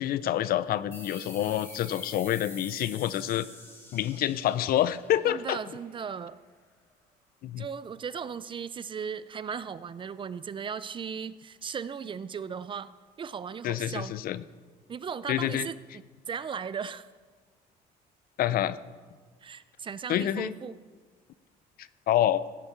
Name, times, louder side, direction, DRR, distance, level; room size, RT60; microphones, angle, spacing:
voice 1, 0.0-3.5 3.9-5.6 7.4-7.6 13.6-14.4 15.3-15.7 18.4-18.8 20.1-20.5 22.1-22.5, left 12 dB, 60° left, 16 dB, 0.5 m, -27 dB
sound 1, 0.9-6.1, left 1 dB, 15° left, 2.5 m, -47 dB
voice 2, 5.2-6.4 7.6-14.1 14.9-15.8 16.3-17.1 19.4-20.8, right 6 dB, 30° right, 16 dB, 0.4 m, -37 dB
16.0 x 8.2 x 4.6 m, 1.5 s
cardioid pair, 110°, 17 cm